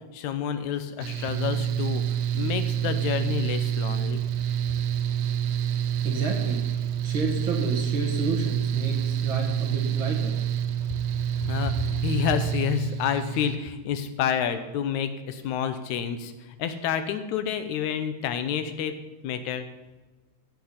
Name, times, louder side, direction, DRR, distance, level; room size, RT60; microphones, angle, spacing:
voice 1, 0.0-2.0 2.3-4.2 11.4-19.0 19.2-19.7, left 8 dB, 80° left, 10 dB, 2.1 m, -29 dB
Mechanical fan, 1.0-13.6, right 9 dB, 80° right, 2.1 m, -27 dB
voice 2, 6.0-6.6 7.0-10.4, right 3 dB, 50° right, 1 dB, 1.8 m, -30 dB
15.0 x 6.0 x 5.7 m, 1.2 s
omnidirectional pair, 3.4 m